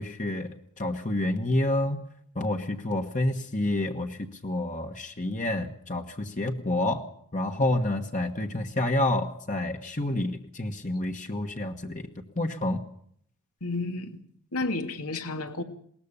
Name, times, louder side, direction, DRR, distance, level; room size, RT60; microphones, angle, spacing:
voice 1, 0.0-2.0 2.3-4.2 4.4-7.0 7.3-12.0 12.4-12.8, left 1 dB, 35° left, 1.4 m, -28 dB
voice 2, 13.6-14.2 14.5-15.6, left 2 dB, 85° left, 2.4 m, -31 dB
21.0 x 19.0 x 6.9 m
head